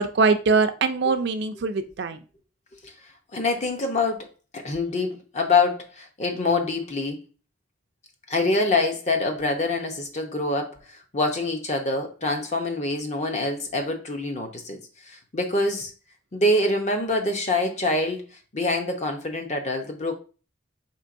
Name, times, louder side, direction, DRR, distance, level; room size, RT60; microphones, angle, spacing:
voice 1, 0.0-2.2, right 4 dB, 55° right, 9 dB, 0.4 m, -22 dB
voice 2, 3.3-4.3 4.5-7.2 8.3-14.8 15.1-15.9 16.3-18.2 18.5-20.1, left 2 dB, 35° left, 4 dB, 0.7 m, -25 dB
4.4 x 3.5 x 2.5 m, 0.35 s
head